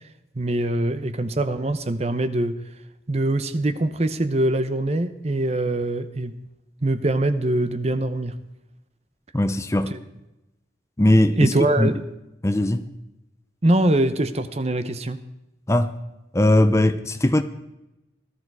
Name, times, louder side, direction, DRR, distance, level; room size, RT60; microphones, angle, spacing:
voice 1, 0.3-2.6 3.1-6.3 6.8-8.4 9.9-10.0 11.3-12.0 13.6-15.2, right 1 dB, 35° right, 0.8 m, -23 dB
voice 2, 9.3-9.9 11.0-11.9 12.4-12.8 15.7-15.9 16.3-17.4, left 1 dB, 15° left, 0.7 m, -19 dB
18.0 x 13.5 x 4.8 m
head